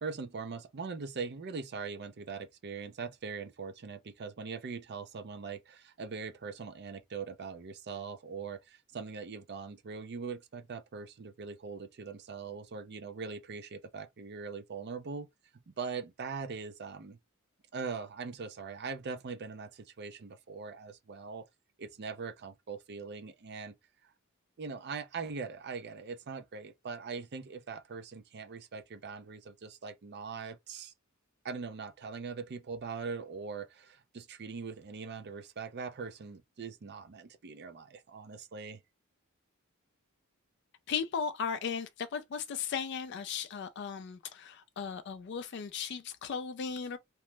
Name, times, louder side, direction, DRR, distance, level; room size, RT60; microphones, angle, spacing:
voice 1, 0.0-15.3 15.8-17.2 17.7-21.4 21.8-23.7 24.0-24.1 24.6-30.9 31.4-38.8, right 5 dB, 50° right, 0.5 m, -41 dB
voice 2, 40.9-47.0, left 6 dB, 50° left, 0.3 m, -36 dB
2.9 x 2.0 x 3.2 m
head